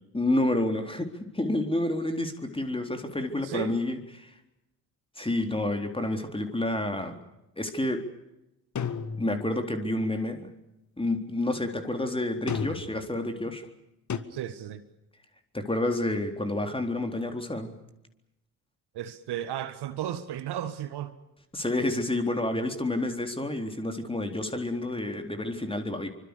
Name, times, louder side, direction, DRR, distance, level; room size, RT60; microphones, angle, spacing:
voice 1, 0.1-4.3 5.2-7.2 7.6-8.0 9.2-10.5 11.0-13.7 15.5-17.8 21.5-26.1, left 1 dB, 10° left, 6 dB, 3.9 m, -29 dB
voice 2, 3.4-3.7 14.3-14.8 18.9-21.2, right 11 dB, 50° right, 11 dB, 1.7 m, -34 dB
sound 1, 8.7-9.7 12.5-13.1 14.1-14.2, left 6 dB, 35° left, 1.9 m, -32 dB
27.0 x 25.0 x 6.9 m, 0.91 s
figure-of-eight pair, 50°, 49 cm